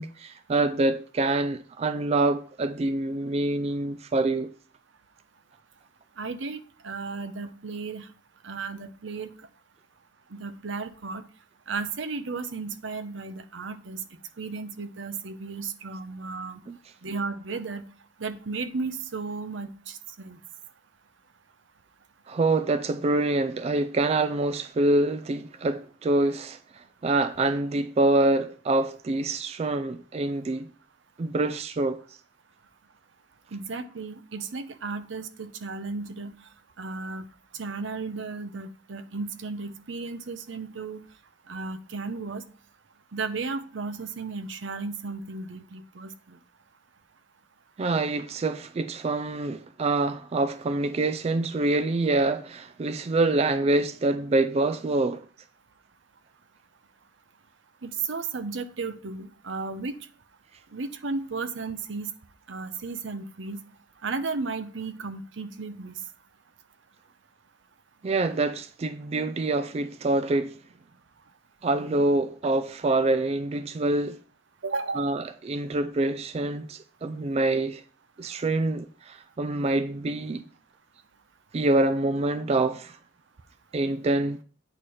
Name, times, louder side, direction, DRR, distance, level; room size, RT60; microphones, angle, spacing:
voice 1, 0.0-4.5 16.7-16.8 22.3-30.7 31.2-32.0 47.8-55.2 68.0-70.6 71.6-74.2 75.0-77.8 78.2-80.4 81.5-83.0 83.7-84.4, right 2 dB, 35° right, 0.3 m, -26 dB
voice 2, 6.2-6.6 6.8-8.1 8.4-9.3 10.3-11.3 11.7-14.0 14.4-16.6 17.0-17.8 18.2-20.4 33.5-36.3 36.8-37.2 37.6-41.0 41.5-42.4 43.1-46.4 57.8-60.0 60.7-62.1 62.5-63.6 64.0-65.9 74.6-75.0, right 4 dB, 80° right, 0.7 m, -34 dB
8.8 x 4.3 x 4.9 m
head